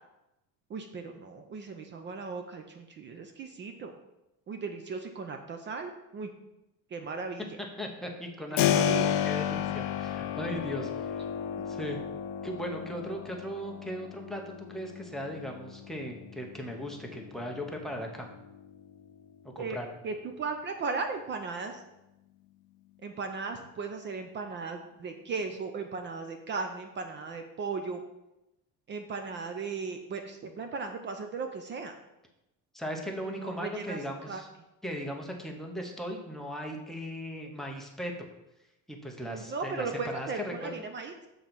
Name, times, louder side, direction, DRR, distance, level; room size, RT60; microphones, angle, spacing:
voice 1, 0.7-3.9 4.5-6.3 6.9-7.5 8.5-9.1 19.6-19.8 20.0-21.8 23.0-28.0 28.9-31.9 33.3-34.0 34.3-34.4 39.2-41.3, right 4 dB, 35° right, 6 dB, 0.5 m, -37 dB
voice 2, 7.8-11.2 11.6-12.0 12.4-18.3 19.4-19.9 32.7-34.5 34.8-38.3 38.9-40.9, equal, ahead, 2 dB, 0.8 m, -38 dB
Keyboard (musical), 8.6-19.2, left 9 dB, 80° left, 0.6 m, -33 dB
7.3 x 3.9 x 6.0 m, 0.92 s
cardioid pair, 165°, 34 cm